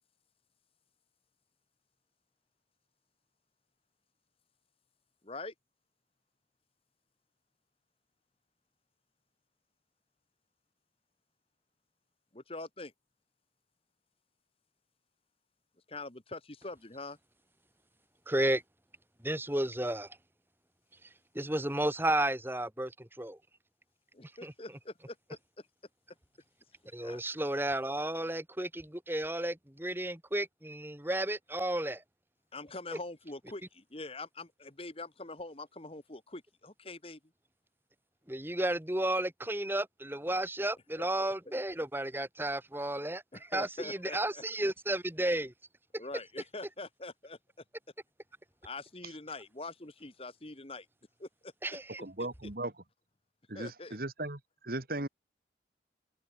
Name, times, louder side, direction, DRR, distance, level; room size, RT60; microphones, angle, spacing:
voice 1, 5.2-5.5 12.3-12.9 15.9-17.2 24.1-25.4 27.0-27.2 32.5-37.2 41.0-41.3 43.3-44.4 46.0-47.4 48.6-50.9 51.2-51.5 52.2-52.3 53.5-54.0, left 2 dB, 30° left, 1.6 m, -44 dB
voice 2, 18.3-18.6 19.2-20.1 21.4-23.4 24.4-24.5 26.9-32.0 38.3-45.5 51.6-52.0, right 1 dB, 10° right, 1.8 m, -32 dB
voice 3, 52.0-52.7 53.5-55.1, right 2 dB, 50° right, 2.0 m, -37 dB
head